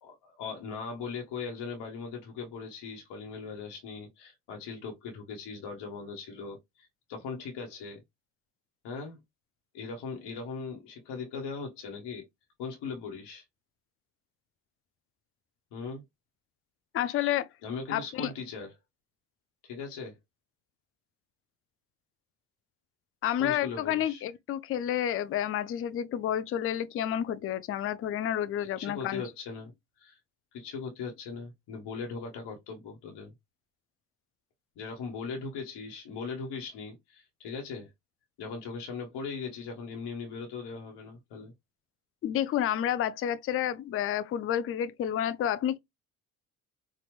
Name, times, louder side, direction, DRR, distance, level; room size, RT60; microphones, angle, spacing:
voice 1, 0.0-8.0 8.8-9.2 9.7-12.2 12.6-13.4 15.7-16.0 17.6-18.7 19.6-20.2 23.4-24.2 28.6-30.2 30.5-33.3 34.8-37.9 38.4-41.5, left 5 dB, 60° left, 1.2 m, -39 dB
voice 2, 16.9-17.5 17.9-18.3 23.2-29.3 42.2-45.8, left 10 dB, 30° left, 0.4 m, -30 dB
4.2 x 2.4 x 3.1 m
hypercardioid pair, 55°, 45 cm